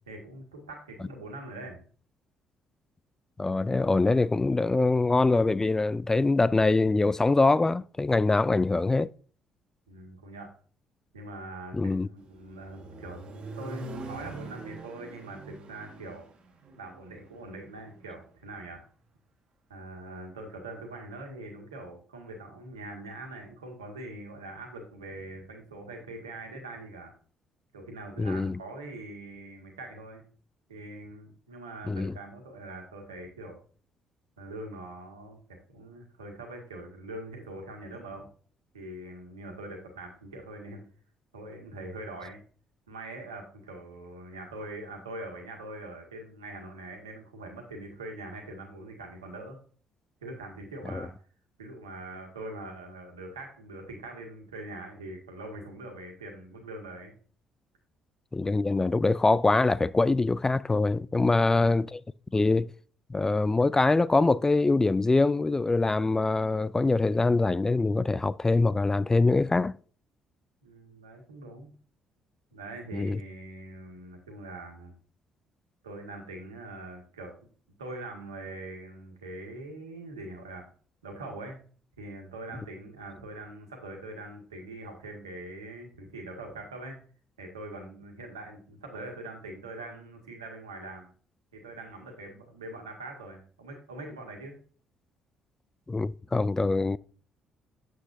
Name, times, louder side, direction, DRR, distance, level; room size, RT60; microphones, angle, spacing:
voice 1, 0.1-1.8 9.9-10.5 11.1-13.3 13.6-16.3 16.8-18.8 19.7-27.1 27.7-30.2 30.7-33.6 34.4-35.4 35.7-38.3 38.7-40.8 41.3-42.4 42.9-49.6 50.2-51.1 51.6-57.1 70.6-71.7 72.5-74.9 75.8-77.3 77.8-80.7 81.0-81.6 82.0-87.0 87.4-91.1 91.5-94.6, right 2 dB, 90° right, 1.8 m, -43 dB
voice 2, 3.4-9.1 11.7-12.1 28.2-28.6 31.9-32.1 50.9-51.0 58.3-62.0 62.3-62.7 63.1-69.7 72.9-73.2 95.9-97.0, left 3 dB, 20° left, 0.3 m, -24 dB
Accelerating revving vroom, 12.2-18.2, right 2 dB, 50° right, 1.9 m, -44 dB
8.6 x 7.6 x 2.7 m
hypercardioid pair, 50°, 3 cm